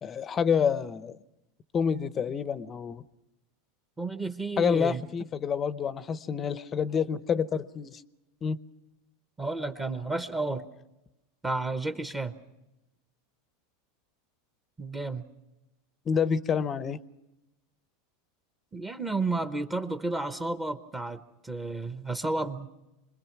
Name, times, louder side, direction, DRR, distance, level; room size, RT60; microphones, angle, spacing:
voice 1, 0.0-1.2 1.7-3.0 4.6-8.0 8.4-8.6 16.1-17.0, left 7 dB, 30° left, 16 dB, 0.7 m, -28 dB
voice 2, 4.0-5.0 9.4-10.7 11.4-12.4 14.8-15.3 18.7-22.7, right 2 dB, 15° right, 9 dB, 0.9 m, -32 dB
26.0 x 21.0 x 6.0 m, 0.96 s
supercardioid pair, 120°, 0 cm